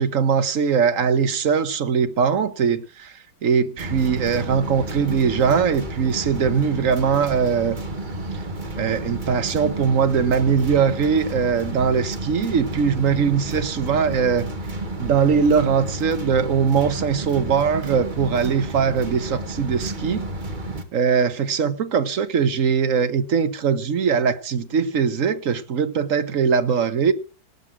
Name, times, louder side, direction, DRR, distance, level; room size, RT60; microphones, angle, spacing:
voice 1, 0.0-3.1 3.4-7.8 8.8-14.5 15.0-20.2 20.9-27.1, right 6 dB, 50° right, 1.3 m, -21 dB
sound 1, 3.8-20.8, right 2 dB, 25° right, 1.7 m, -31 dB
18.0 x 8.1 x 6.0 m
omnidirectional pair, 2.0 m